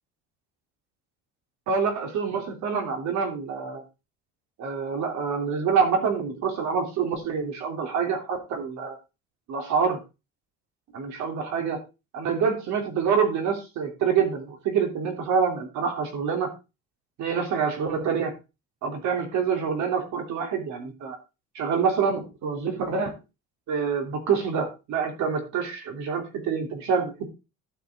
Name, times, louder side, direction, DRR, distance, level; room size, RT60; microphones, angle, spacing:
voice 1, 1.7-3.8 4.6-9.0 9.5-10.0 10.9-11.8 12.1-16.5 17.2-18.3 18.8-21.2 21.5-23.2 23.7-27.3, right 6 dB, 65° right, 4 dB, 3.2 m, -26 dB
12.0 x 6.3 x 4.3 m, 0.28 s
cardioid pair, 180°, 31 cm